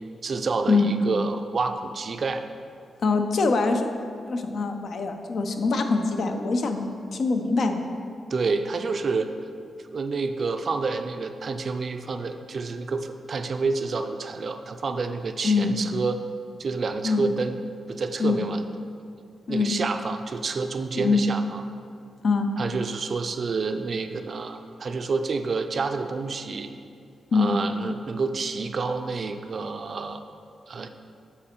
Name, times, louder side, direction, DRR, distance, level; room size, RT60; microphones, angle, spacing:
voice 1, 0.2-2.4 8.3-9.3 9.9-16.2 16.6-17.6 17.9-18.6 19.5-21.6 22.6-26.7 27.3-30.2 30.7-30.9, right 4 dB, 50° right, 7 dB, 0.4 m, -28 dB
voice 2, 3.0-3.9 4.3-7.9 15.4-15.7 17.0-17.2 18.2-18.4 19.5-19.7 20.9-21.3 22.2-22.5 27.3-27.5, left 4 dB, 65° left, 6 dB, 0.5 m, -23 dB
7.4 x 4.2 x 4.4 m, 2.3 s
cardioid pair, 110°, 0 cm